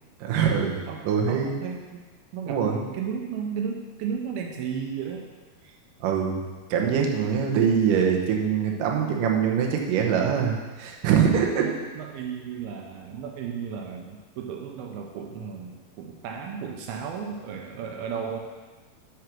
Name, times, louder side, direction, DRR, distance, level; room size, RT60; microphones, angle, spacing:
voice 1, 0.2-1.5 2.5-2.8 6.0-6.4 6.7-11.7, right 7 dB, 70° right, 0 dB, 2.5 m, -23 dB
voice 2, 0.9-2.0 2.3-5.3 11.6-18.4, right 7 dB, 85° right, 2 dB, 2.6 m, -34 dB
8.3 x 6.1 x 6.1 m, 1.3 s
omnidirectional pair, 4.4 m